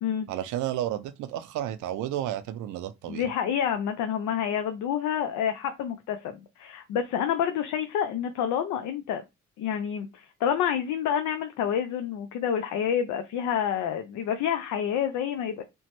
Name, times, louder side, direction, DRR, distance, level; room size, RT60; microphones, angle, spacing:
voice 1, 0.3-3.3, right 12 dB, 80° right, 0.5 m, -32 dB
voice 2, 3.1-9.2 9.6-15.6, left 8 dB, 80° left, 0.4 m, -28 dB
2.9 x 2.1 x 2.9 m
cardioid pair, 90°, 30 cm